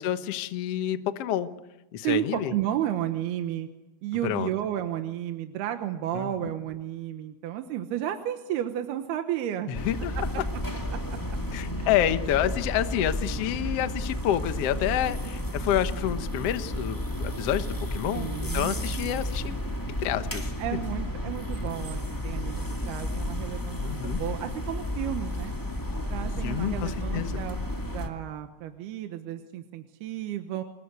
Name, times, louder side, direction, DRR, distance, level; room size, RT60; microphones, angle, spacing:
voice 1, 0.0-1.5 1.9-2.5 4.2-4.5 6.1-6.3 9.7-10.3 11.5-19.5 20.0-20.4 23.8-24.2 26.4-27.4, left 11 dB, 85° left, 10 dB, 1.3 m, -28 dB
voice 2, 2.0-3.7 4.0-9.7 10.9-11.0 11.8-11.9 18.1-19.3 20.6-25.5 26.1-27.6 27.9-30.6, right 11 dB, 75° right, 7 dB, 3.0 m, -32 dB
sound 1, 9.7-28.1, left 1 dB, 15° left, 0.6 m, -32 dB
27.0 x 21.0 x 8.2 m, 0.98 s
omnidirectional pair, 4.7 m